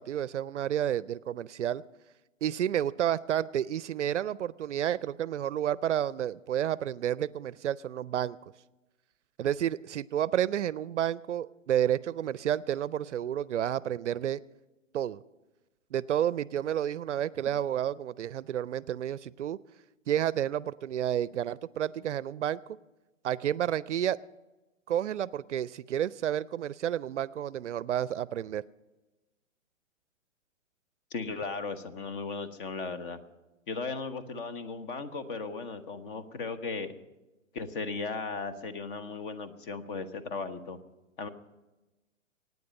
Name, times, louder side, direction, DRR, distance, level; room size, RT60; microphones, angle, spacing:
voice 1, 0.0-1.8 2.4-8.4 9.4-14.4 14.9-15.2 15.9-19.6 20.1-22.6 23.2-24.2 24.9-28.6, right 10 dB, 60° right, 20 dB, 0.5 m, -30 dB
voice 2, 31.1-33.2 33.7-36.9 37.5-40.8 41.2-41.3, left 4 dB, 40° left, 12 dB, 1.2 m, -36 dB
24.0 x 9.5 x 5.3 m, 1.1 s
hypercardioid pair, 135°, 40 cm